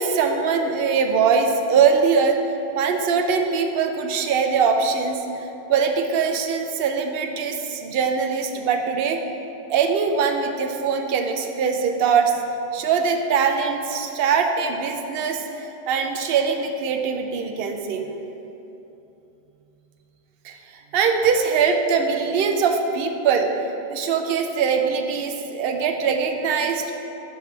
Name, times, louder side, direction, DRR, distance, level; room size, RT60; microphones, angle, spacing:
voice 1, 0.0-2.4 2.7-9.2 9.7-12.4 12.7-18.1 20.4-23.5 23.9-26.9, right 6 dB, 70° right, 5 dB, 0.7 m, -22 dB
7.2 x 3.0 x 5.9 m, 2.9 s
omnidirectional pair, 1.1 m